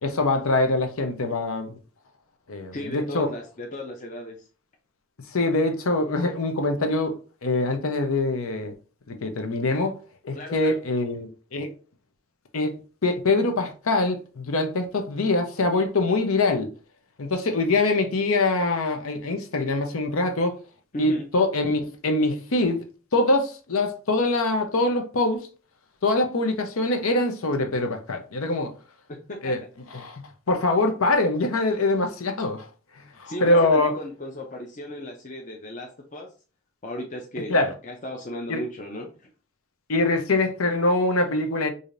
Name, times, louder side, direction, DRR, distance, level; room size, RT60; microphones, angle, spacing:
voice 1, 0.0-1.8 2.5-3.3 5.3-8.7 9.2-10.0 10.2-11.7 12.5-16.7 17.2-20.6 21.0-22.8 23.1-25.5 26.0-28.7 29.4-29.6 29.9-32.7 33.2-33.9 37.5-37.7 38.5-38.6 39.9-41.7, left 2 dB, 85° left, 0.7 m, -24 dB
voice 2, 2.7-4.5 10.3-10.8 20.9-21.3 29.1-29.5 33.2-36.3 36.8-37.6 37.8-39.3, left 1 dB, 35° left, 0.5 m, -35 dB
4.9 x 2.7 x 2.5 m
head